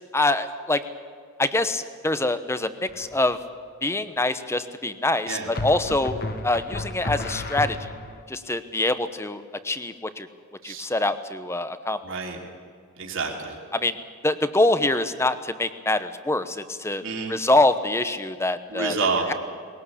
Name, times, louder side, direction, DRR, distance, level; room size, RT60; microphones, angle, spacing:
voice 1, 0.1-0.8 1.4-3.4 3.8-7.8 8.3-10.3 10.6-12.0 13.7-14.0 14.2-17.0 17.3-18.9, left 2 dB, 10° left, 11 dB, 0.9 m, -24 dB
sound 1, 2.9-3.4 5.6-8.2, left 2 dB, 45° left, 1.6 m, -32 dB
voice 2, 12.0-12.4 13.0-13.6 17.0-17.3 18.7-19.3, right 4 dB, 60° right, 0 dB, 3.4 m, -28 dB
21.5 x 18.0 x 8.5 m, 2.1 s
head